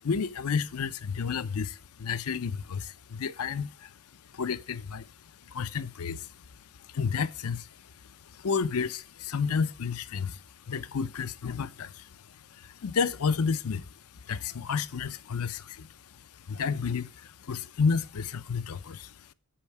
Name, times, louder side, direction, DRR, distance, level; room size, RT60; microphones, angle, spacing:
voice 1, 0.0-4.0 4.3-5.1 5.5-6.4 6.8-19.3, left 5 dB, 75° left, 0.5 m, -31 dB
8.8 x 5.5 x 4.6 m
head